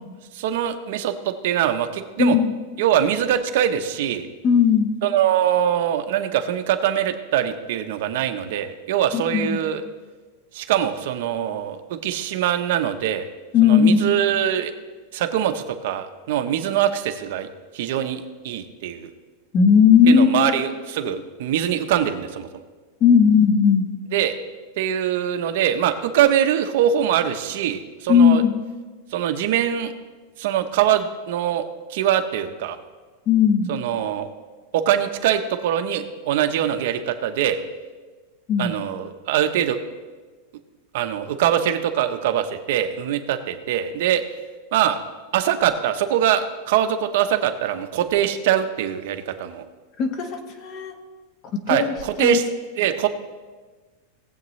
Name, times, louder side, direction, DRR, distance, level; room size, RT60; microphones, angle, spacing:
voice 1, 0.3-2.4 2.8-4.3 5.0-9.8 10.5-13.2 13.6-14.7 15.1-17.5 17.7-19.1 20.0-22.5 24.1-24.4 24.8-28.4 29.1-29.9 30.4-31.6 31.9-32.8 33.7-34.3 34.7-37.6 38.6-39.8 40.9-44.2 44.7-45.0 45.3-49.6 51.7-52.5 52.8-53.1, right 10 dB, 55° right, 7 dB, 0.8 m, -23 dB
voice 2, 2.2-2.5 4.4-4.9 9.1-9.6 13.5-14.0 19.5-20.5 23.0-23.9 28.1-28.5 33.3-33.7 38.5-38.7 50.0-50.9 51.5-52.4, left 7 dB, 30° left, 6 dB, 1.1 m, -17 dB
19.0 x 7.9 x 3.2 m, 1.4 s
supercardioid pair, 170°, 0 cm